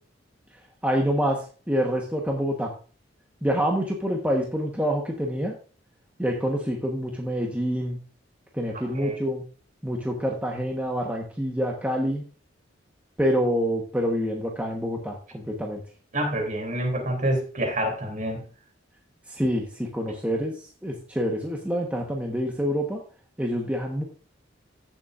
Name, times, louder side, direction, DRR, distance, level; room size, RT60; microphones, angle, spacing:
voice 1, 0.8-2.7 3.4-5.5 6.2-8.0 8.5-9.4 9.8-12.2 13.2-15.8 19.3-23.0 23.4-24.0, equal, 5° right, 0 dB, 1.2 m, -27 dB
voice 2, 8.7-9.2 16.1-18.5, right 1 dB, 45° right, 3 dB, 3.1 m, -27 dB
15.5 x 7.1 x 2.5 m, 0.39 s
head